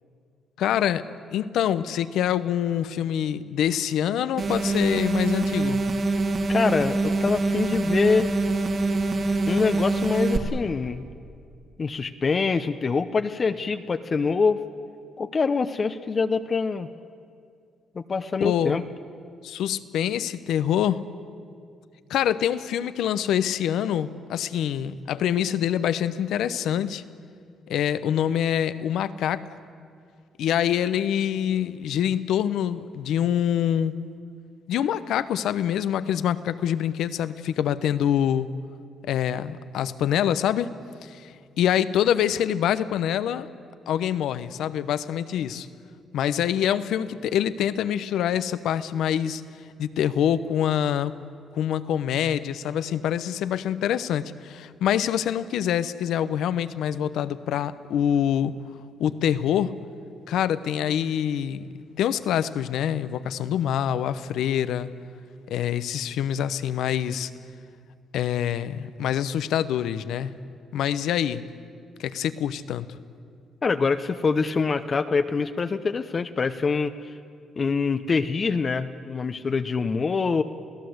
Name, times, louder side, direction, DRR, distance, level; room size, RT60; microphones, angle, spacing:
voice 1, 0.6-5.8 18.4-18.8 19.4-21.0 22.1-27.0 27.7-29.5 30.4-33.9 34.7-38.5 39.0-40.7 41.0-43.5 43.9-45.7 46.1-49.4 49.8-51.1 51.5-58.5 59.0-59.7 60.3-61.6 62.0-64.9 65.5-67.3 68.1-70.3 70.7-71.4 72.0-73.0, left 10 dB, 80° left, 14 dB, 0.8 m, -25 dB
sound 1, 4.4-10.4, right 3 dB, 50° right, 2.4 m, -24 dB
voice 2, 6.5-8.3 9.5-11.0 11.8-14.6 15.2-16.9 17.9-18.8 73.6-77.1 77.6-80.4, left 4 dB, 40° left, 8 dB, 0.8 m, -25 dB
29.0 x 17.0 x 8.0 m, 2.3 s
cardioid pair, 90°, 0 cm